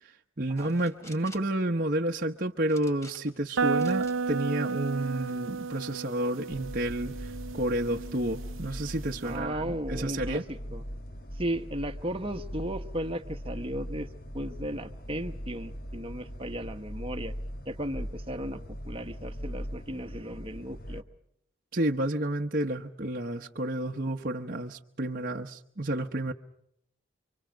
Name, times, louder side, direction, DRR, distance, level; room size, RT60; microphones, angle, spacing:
voice 1, 0.0-10.4 21.7-26.3, right 1 dB, 45° right, 1 dB, 1.1 m, -30 dB
sound 1, 0.6-1.6 2.7-3.4 3.8-4.2 4.7-5.3, equal, 15° left, 3.7 m, -51 dB
sound 2, 3.6-9.3, right 5 dB, 80° right, 0.9 m, -33 dB
sound 3, 6.5-21.0, equal, 50° left, 1.7 m, -40 dB
voice 2, 9.2-10.8 11.3-17.3 17.6-21.0, equal, 25° right, 6 dB, 1.3 m, -35 dB
30.0 x 25.0 x 5.2 m, 0.73 s
head